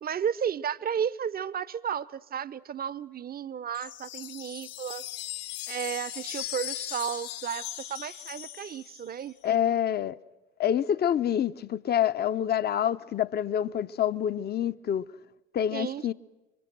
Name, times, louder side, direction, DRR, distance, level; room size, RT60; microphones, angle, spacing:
voice 1, 0.0-5.0 5.7-9.3 15.7-16.1, right 8 dB, 25° right, 0.7 m, -33 dB
sound 1, 3.7-9.2, left 13 dB, 60° left, 1.3 m, -39 dB
voice 2, 9.4-10.2 10.6-15.1 15.5-16.1, left 10 dB, 30° left, 0.7 m, -27 dB
26.0 x 24.0 x 6.1 m
figure-of-eight pair, 60°, 35 cm